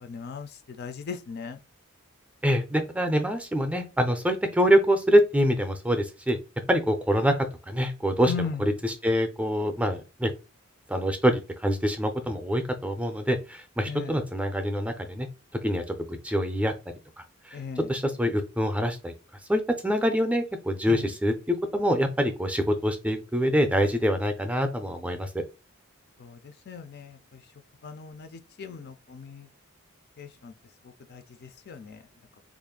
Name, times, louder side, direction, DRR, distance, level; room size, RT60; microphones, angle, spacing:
voice 1, 0.1-0.5 0.8-1.6 8.3-8.6 13.9-14.2 17.5-17.8 20.9-21.0 26.2-26.4 26.7-27.2 27.8-29.4 30.2-30.5 31.1-32.0, left 5 dB, 50° left, 0.4 m, -37 dB
voice 2, 2.4-6.4 6.7-7.3 7.7-10.3 10.9-15.3 15.6-15.8 16.1-16.7 17.8-19.1 19.5-25.3, equal, 5° right, 0.5 m, -25 dB
3.5 x 2.5 x 3.6 m
head